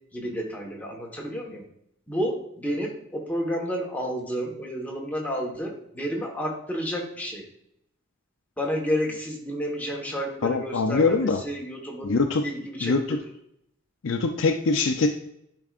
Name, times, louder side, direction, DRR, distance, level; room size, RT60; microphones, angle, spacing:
voice 1, 0.1-1.6 2.1-7.5 8.6-12.1 12.4-13.2, equal, 10° left, -1 dB, 1.3 m, -31 dB
voice 2, 10.4-11.4 12.0-12.4 12.8-13.2 14.0-15.1, left 4 dB, 65° left, 5 dB, 0.5 m, -23 dB
10.5 x 4.7 x 2.5 m, 0.75 s
head